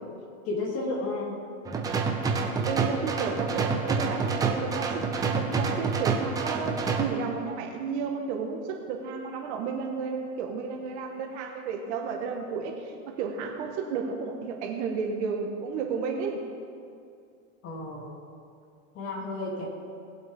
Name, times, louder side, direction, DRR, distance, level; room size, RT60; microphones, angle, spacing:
voice 1, 0.4-1.4 17.6-18.1 18.9-19.7, left 2 dB, 35° left, -3 dB, 2.9 m, -32 dB
sound 1, 1.7-7.0, right 4 dB, 10° right, 0.5 m, -28 dB
voice 2, 2.7-16.4, right 5 dB, 55° right, 2 dB, 1.7 m, -32 dB
20.0 x 7.8 x 3.7 m, 2.4 s
supercardioid pair, 150°, 41 cm